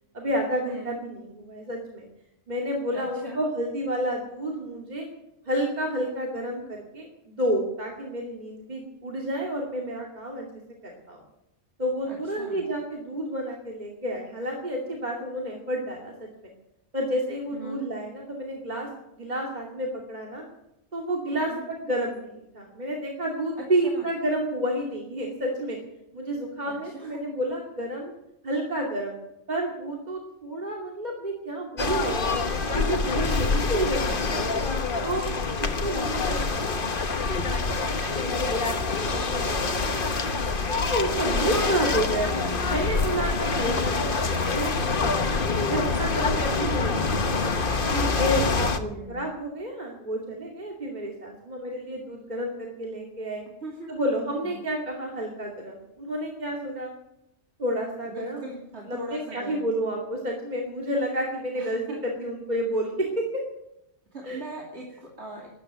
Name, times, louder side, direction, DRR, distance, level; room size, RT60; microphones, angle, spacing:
voice 1, 0.1-2.0 2.5-5.1 5.4-10.5 10.8-11.2 11.8-16.3 16.9-18.9 19.2-20.4 20.9-25.8 26.1-28.1 28.4-29.1 29.5-32.4 32.7-34.6 35.0-35.3 35.6-37.0 37.4-37.6 38.2-40.2 40.5-42.3 42.7-45.4 45.7-47.3 47.9-53.4 53.9-56.9 57.6-58.4 58.9-63.4 64.2-64.4, right 1 dB, 40° right, -1 dB, 2.7 m, -30 dB
voice 2, 0.7-1.0 2.9-3.4 12.1-12.6 17.5-17.9 21.3-21.6 23.8-24.0 26.6-27.2 35.6-36.1 41.4-41.8 42.0-42.1 43.3-43.7 48.5-49.2 53.6-54.0 54.4-54.6 58.1-59.7 61.5-62.0 64.1-65.5, right 2 dB, 70° right, -2 dB, 3.0 m, -40 dB
sound 1, 31.8-48.8, left 4 dB, 50° left, 1.4 m, -26 dB
13.0 x 11.5 x 9.2 m, 0.84 s
omnidirectional pair, 1.2 m